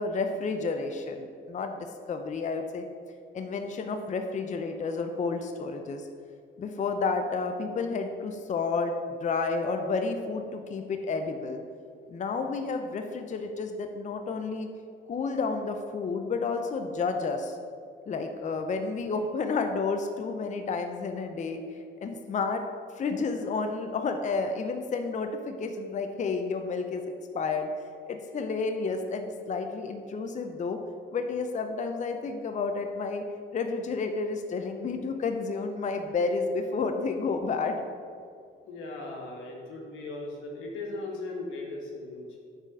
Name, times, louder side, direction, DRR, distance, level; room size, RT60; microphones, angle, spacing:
voice 1, 0.0-1.7 2.1-2.8 3.3-6.1 6.6-8.9 9.2-11.6 12.1-14.7 15.1-17.6 18.1-21.6 22.0-22.6 22.9-27.7 28.1-30.8 31.1-33.2 33.5-37.8, left 4 dB, 40° left, 6 dB, 0.5 m, -31 dB
voice 2, 38.6-42.4, left 2 dB, 90° left, -1 dB, 1.4 m, -38 dB
6.3 x 4.1 x 6.0 m, 2.2 s
cardioid pair, 90°, 20 cm